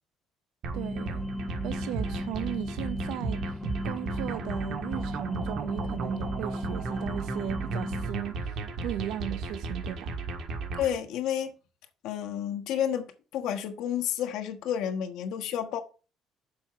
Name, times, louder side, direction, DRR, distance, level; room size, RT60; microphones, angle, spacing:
sound 1, 0.6-11.0, right 4 dB, 60° right, 1.6 m, -35 dB
sound 2, 0.7-8.1, left 1 dB, 5° left, 0.4 m, -36 dB
voice 1, 0.7-1.2 1.6-3.6 3.8-10.1, right 12 dB, 85° right, 0.6 m, -36 dB
voice 2, 10.8-11.5 12.0-13.1 13.3-15.8, left 9 dB, 80° left, 1.2 m, -30 dB
7.1 x 5.2 x 5.7 m
cardioid pair, 160°, 0 cm